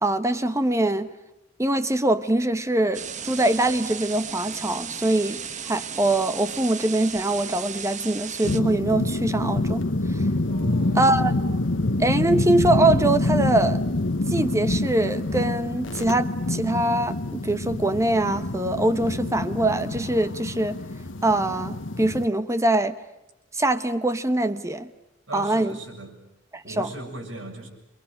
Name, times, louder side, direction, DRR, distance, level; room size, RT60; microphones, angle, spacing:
voice 1, 0.0-1.1 1.6-5.4 5.7-9.8 10.1-10.2 10.9-11.3 12.0-13.8 14.3-20.8 21.2-23.0 23.5-24.9 25.3-25.8 26.5-26.9, right 1 dB, 15° right, 1.0 m, -23 dB
sound 1, 2.9-8.6, right 7 dB, 40° right, 1.4 m, -35 dB
sound 2, 8.4-22.3, left 2 dB, 80° left, 1.3 m, -26 dB
voice 2, 10.5-11.1 25.3-26.2 26.6-27.7, right 1 dB, 90° right, 7.2 m, -38 dB
28.5 x 23.0 x 9.0 m
head